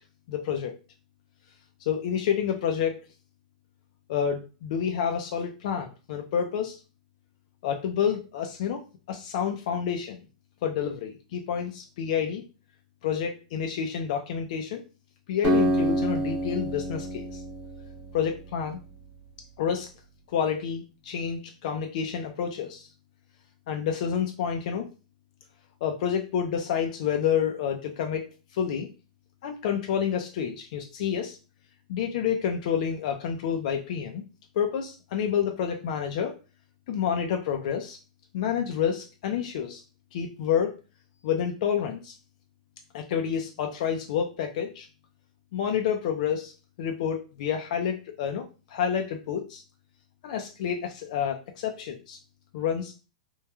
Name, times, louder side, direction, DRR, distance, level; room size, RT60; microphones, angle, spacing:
voice 1, 0.3-0.7 1.8-3.0 4.1-6.8 7.6-8.8 9.1-10.2 10.6-12.4 13.0-14.8 15.3-17.4 18.1-18.8 19.6-19.9 20.3-22.9 23.7-24.9 25.8-28.9 29.4-31.4 31.9-34.2 34.6-36.4 36.9-38.0 38.3-39.8 40.1-40.7 41.2-42.1 42.9-44.9 45.5-46.5 46.8-49.6 50.2-52.2 52.5-52.9, left 8 dB, 60° left, 4 dB, 0.4 m, -29 dB
Acoustic guitar, 15.4-19.0, right 1 dB, 30° right, 0.8 m, -28 dB
3.0 x 2.2 x 2.2 m, 0.32 s
hypercardioid pair, 135°, 4 cm